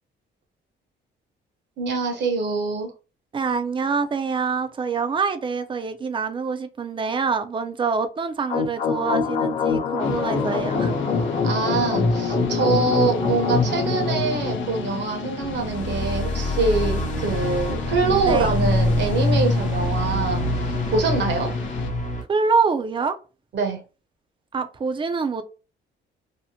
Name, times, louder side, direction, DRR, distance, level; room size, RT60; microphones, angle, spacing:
voice 1, 1.8-2.9 11.4-21.5 23.5-23.8, right 4 dB, 60° right, 0.8 m, -24 dB
voice 2, 3.3-10.9 18.3-18.5 22.3-23.1 24.5-25.4, right 5 dB, 25° right, 0.4 m, -25 dB
sound 1, 8.5-22.2, left 3 dB, 40° left, 0.7 m, -24 dB
sound 2, 10.0-21.9, left 8 dB, 70° left, 0.4 m, -35 dB
2.7 x 2.0 x 2.7 m
cardioid pair, 90°, 20 cm